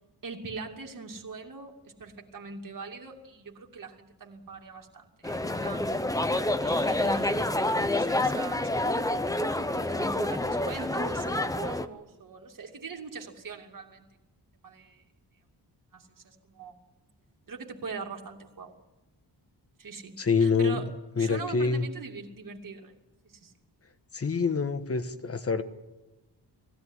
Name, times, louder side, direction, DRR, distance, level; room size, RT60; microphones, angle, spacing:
voice 1, 0.2-6.0 6.6-9.3 9.8-14.1 14.6-15.0 15.9-16.7 17.5-18.8 19.8-20.9 21.2-22.9 23.2-23.5, right 4 dB, 50° right, 2 dB, 2.6 m, -41 dB
Feria multitud ciudad, 5.2-11.9, left 1 dB, 10° left, 0.8 m, -28 dB
voice 2, 20.2-20.9 21.2-21.8 24.1-25.6, left 5 dB, 35° left, 10 dB, 1.4 m, -26 dB
20.5 x 16.5 x 9.8 m, 1.1 s
wide cardioid pair, 160°, 42 cm